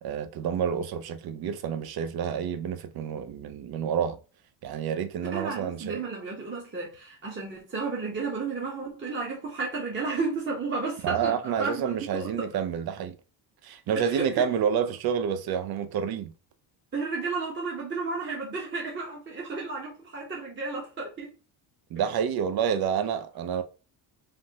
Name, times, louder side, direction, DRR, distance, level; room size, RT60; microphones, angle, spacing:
voice 1, 0.0-4.2 4.6-6.0 11.0-13.1 13.6-16.3 21.9-23.6, right 8 dB, 50° right, 0.5 m, -29 dB
voice 2, 5.3-12.5 14.0-14.5 16.9-21.3, right 4 dB, 25° right, 0.9 m, -33 dB
3.3 x 2.0 x 2.7 m
cardioid pair, 85°, 49 cm